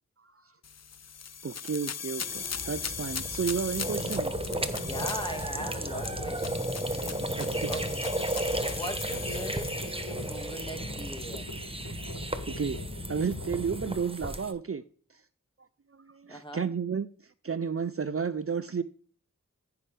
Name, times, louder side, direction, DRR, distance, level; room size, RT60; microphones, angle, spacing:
sound 1, 0.6-10.6, left 7 dB, 55° left, 0.5 m, -39 dB
voice 1, 1.4-4.3 7.4-7.7 11.9-12.1 12.5-12.8 13.1-14.8 15.9-17.1 17.4-18.8, right 6 dB, 45° right, 0.6 m, -32 dB
sound 2, 2.2-14.5, right 1 dB, 15° right, 1.1 m, -35 dB
sound 3, 2.5-14.0, left 1 dB, 80° left, 4.1 m, -40 dB
voice 2, 4.7-6.9 7.7-8.1 8.4-11.6 16.3-16.7, equal, 15° left, 1.9 m, -40 dB
14.5 x 5.9 x 3.4 m
wide cardioid pair, 45°, 31 cm